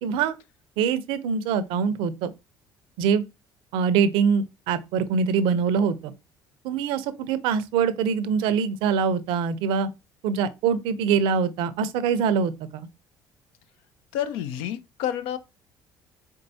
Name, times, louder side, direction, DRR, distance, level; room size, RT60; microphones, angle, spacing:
voice 1, 0.0-0.4 0.8-2.3 3.0-3.2 3.7-6.1 6.6-9.9 10.2-12.9, right 6 dB, 80° right, 0.5 m, -24 dB
voice 2, 14.1-15.4, left 10 dB, 85° left, 0.5 m, -29 dB
4.5 x 3.7 x 2.7 m
supercardioid pair, 85°, 8 cm